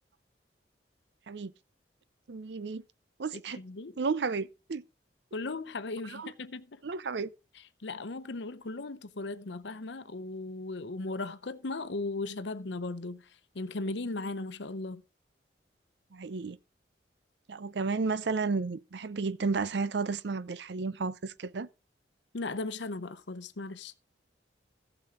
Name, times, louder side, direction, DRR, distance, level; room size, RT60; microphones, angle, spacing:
voice 1, 2.3-2.8 3.2-3.6 4.0-4.8 6.1-6.3 6.8-7.3 16.1-16.6 17.5-21.7, right 4 dB, 70° right, 0.6 m, -32 dB
voice 2, 3.3-3.9 5.3-6.8 7.5-15.0 22.3-23.9, left 3 dB, 80° left, 0.8 m, -37 dB
15.0 x 7.1 x 3.8 m
head